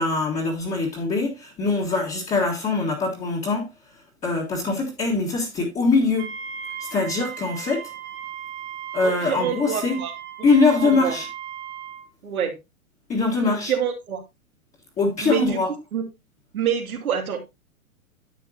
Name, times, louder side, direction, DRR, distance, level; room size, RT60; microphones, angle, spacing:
voice 1, 0.0-3.7 4.2-6.3 6.8-7.9 8.9-10.0 10.4-11.3 13.1-13.7 15.0-15.7, left 3 dB, 15° left, 1.7 m, -22 dB
Wind instrument woodwind instrument, 6.2-12.1, right 9 dB, 30° right, 1.2 m, -36 dB
voice 2, 9.0-10.1 10.8-11.1 12.2-12.6 13.5-14.2 15.2-15.6 15.9-16.0 16.5-17.4, right 8 dB, 85° right, 2.6 m, -26 dB
10.5 x 7.4 x 2.8 m
hypercardioid pair, 140°, 42 cm